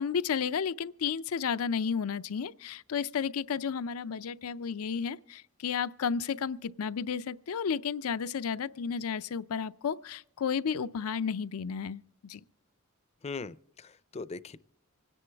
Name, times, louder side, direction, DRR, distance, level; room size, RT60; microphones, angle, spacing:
voice 1, 0.0-12.4, left 6 dB, 90° left, 0.5 m, -32 dB
voice 2, 13.2-14.6, left 4 dB, 30° left, 0.5 m, -40 dB
25.5 x 10.0 x 3.4 m
head